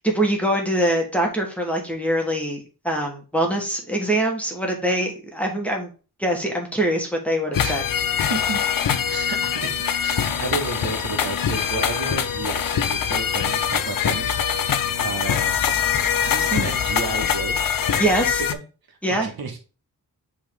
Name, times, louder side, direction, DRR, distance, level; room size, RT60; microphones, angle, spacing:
voice 1, 0.0-5.9 6.2-7.8 18.0-18.4 19.0-19.3, right 1 dB, 5° left, 0 dB, 1.4 m, -23 dB
sound 1, 7.5-18.5, left 8 dB, 65° left, 0.6 m, -23 dB
voice 2, 8.3-8.6 9.1-15.9 16.2-17.6 18.1-18.6 18.9-19.6, right 4 dB, 75° right, 1 dB, 1.7 m, -32 dB
7.5 x 3.6 x 3.5 m, 0.34 s
wide cardioid pair, 145°, 36 cm